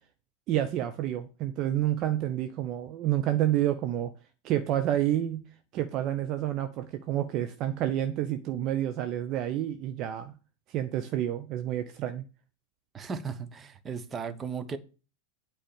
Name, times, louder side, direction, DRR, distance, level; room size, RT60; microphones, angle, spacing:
voice 1, 0.5-4.1 4.4-5.4 5.7-10.3 10.7-12.2, right 12 dB, 35° right, 0.8 m, -29 dB
voice 2, 12.9-14.8, right 5 dB, 20° right, 1.2 m, -36 dB
8.9 x 4.9 x 7.1 m
figure-of-eight pair, 90°, 0 cm